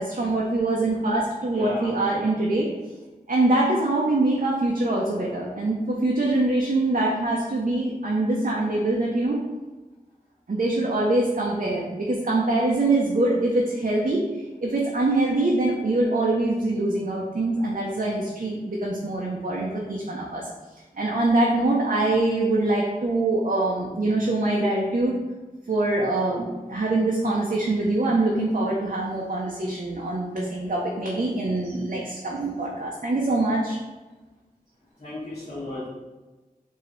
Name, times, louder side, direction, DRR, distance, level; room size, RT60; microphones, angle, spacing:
voice 1, 0.0-2.7 3.3-9.4 10.5-14.2 14.6-20.5 20.9-25.1 25.7-33.8, right 2 dB, 55° right, -3 dB, 0.6 m, -24 dB
voice 2, 1.5-1.9 35.0-35.9, left 2 dB, 50° left, -12 dB, 1.3 m, -33 dB
4.8 x 2.8 x 3.1 m, 1.2 s
wide cardioid pair, 45°, 16 cm